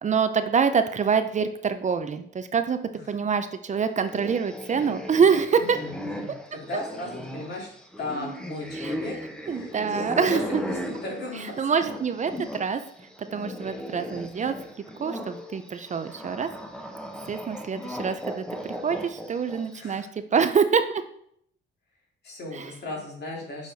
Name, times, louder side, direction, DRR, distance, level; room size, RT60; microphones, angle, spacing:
voice 1, 0.0-2.8 3.1-5.8 8.7-8.9 9.5-10.6 11.6-12.8 13.2-14.6 15.0-16.5 17.3-21.0 22.5-22.7, right 6 dB, 35° right, 10 dB, 0.5 m, -25 dB
sound 1, 4.0-12.7 13.0-19.8, equal, 5° left, 1.0 m, -37 dB
voice 2, 5.6-7.7 8.0-9.1 9.4-11.9 19.7-20.1 22.2-23.7, left 2 dB, 55° left, -1 dB, 2.5 m, -37 dB
6.5 x 4.8 x 4.0 m, 0.67 s
cardioid pair, 90°, 20 cm